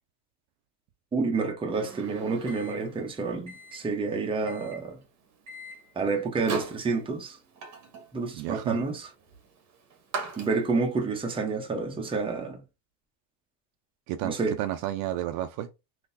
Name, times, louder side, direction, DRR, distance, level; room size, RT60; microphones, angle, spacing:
voice 1, 1.1-5.0 6.0-7.4 8.1-9.1 10.4-12.6 14.2-14.6, right 4 dB, 10° right, 0.7 m, -29 dB
Microwave oven, 1.7-11.0, right 4 dB, 35° right, 0.9 m, -41 dB
voice 2, 8.3-8.8 14.1-15.7, right 13 dB, 55° right, 0.5 m, -32 dB
3.7 x 2.7 x 2.6 m
supercardioid pair, 135°, 47 cm